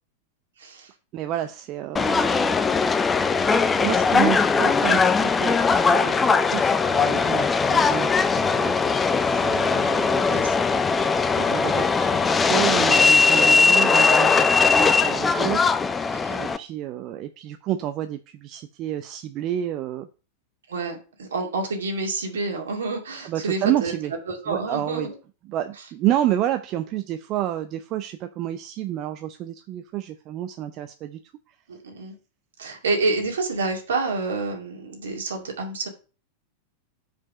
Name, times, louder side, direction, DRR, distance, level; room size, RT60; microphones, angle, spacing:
voice 1, 0.6-0.9 6.0-6.1 10.3-10.8 16.1-16.5 20.7-23.9 24.3-25.1 31.7-32.1 32.6-35.9, right 3 dB, 65° right, 1 dB, 2.3 m, -28 dB
voice 2, 1.1-2.6 3.8-8.7 9.2-10.3 11.3-15.6 15.9-16.0 16.4-20.1 23.2-24.1 24.5-25.1 25.5-31.2, right 12 dB, 35° right, 9 dB, 0.5 m, -29 dB
Subway metro underground, 2.0-16.6, left 4 dB, 15° left, 0.5 m, -20 dB
5.3 x 5.2 x 6.3 m, 0.35 s
figure-of-eight pair, 90°, 0 cm